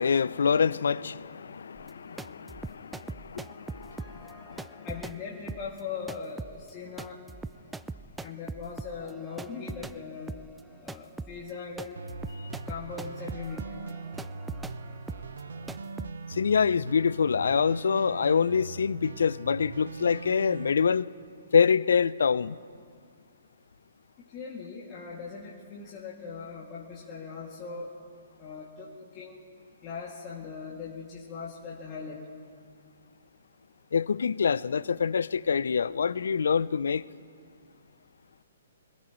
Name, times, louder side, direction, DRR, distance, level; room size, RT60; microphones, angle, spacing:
voice 1, 0.0-4.9 16.3-21.1 21.5-22.6 33.9-37.1, left 6 dB, 70° left, 0.4 m, -26 dB
sound 1, 1.8-10.0 10.3-16.1, right 3 dB, 5° right, 0.3 m, -42 dB
voice 2, 4.8-7.2 8.2-10.4 10.8-12.0 12.7-13.8 24.3-27.9 28.4-29.4 29.8-32.3, left 5 dB, 30° left, 2.3 m, -40 dB
sound 2, 12.0-20.7, right 3 dB, 75° right, 0.8 m, -41 dB
26.0 x 18.0 x 3.1 m
hypercardioid pair, 130°, 0 cm